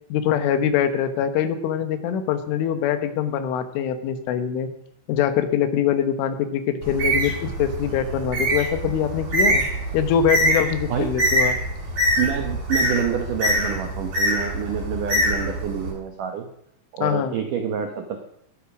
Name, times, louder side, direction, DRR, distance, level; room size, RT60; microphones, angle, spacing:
voice 1, 0.1-4.7 5.1-9.6 9.9-11.6 17.0-17.4, left 8 dB, 85° left, 9 dB, 3.7 m, -23 dB
Bird, 6.8-15.9, equal, 50° right, 8.5 m, -24 dB
voice 2, 12.2-16.5 16.9-18.2, right 8 dB, 85° right, 5 dB, 1.8 m, -27 dB
21.0 x 8.6 x 6.1 m, 0.75 s
omnidirectional pair, 5.5 m